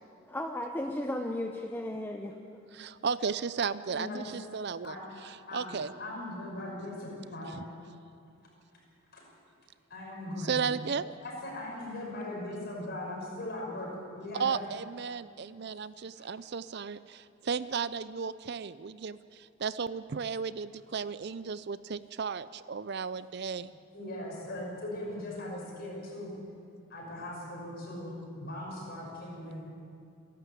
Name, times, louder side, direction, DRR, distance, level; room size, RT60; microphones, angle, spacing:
voice 1, 0.3-2.3, left 1 dB, 10° left, 3 dB, 0.8 m, -34 dB
voice 2, 2.7-5.0 5.2-5.9 7.5-7.6 10.4-11.1 14.3-23.7, right 6 dB, 50° right, 16 dB, 0.4 m, -34 dB
voice 3, 3.9-4.3 4.8-5.2 5.5-7.6 9.1-9.3 9.9-10.6 11.2-14.6 16.2-16.3 23.9-26.3 26.9-29.6, left 1 dB, 45° left, -2 dB, 6.1 m, -39 dB
26.5 x 12.0 x 8.4 m, 2.5 s
head